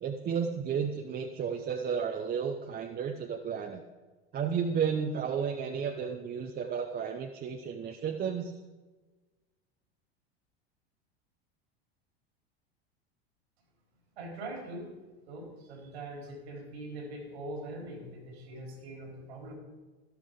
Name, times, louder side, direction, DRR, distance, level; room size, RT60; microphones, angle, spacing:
voice 1, 0.0-3.8 4.3-8.5, right 7 dB, 30° right, 3 dB, 0.9 m, -32 dB
voice 2, 14.2-14.9 15.3-19.5, right 1 dB, 85° right, 1 dB, 3.9 m, -42 dB
12.5 x 12.0 x 3.7 m, 1.3 s
hypercardioid pair, 90°, 31 cm